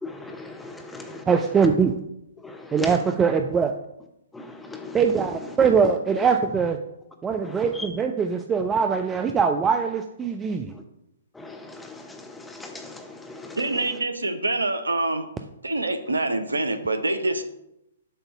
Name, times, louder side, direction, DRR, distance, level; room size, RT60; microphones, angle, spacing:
voice 1, 0.0-1.2 2.4-2.9 4.3-5.0 7.4-7.9 11.4-13.6, left 3 dB, 5° left, 0.9 m, -39 dB
voice 2, 1.3-1.9 2.7-3.7 4.9-6.8 7.2-10.7, right 6 dB, 15° right, 0.4 m, -22 dB
voice 3, 13.6-15.3 15.6-17.4, right 2 dB, 80° right, 0.7 m, -25 dB
7.8 x 2.6 x 5.8 m
figure-of-eight pair, 120°, 0 cm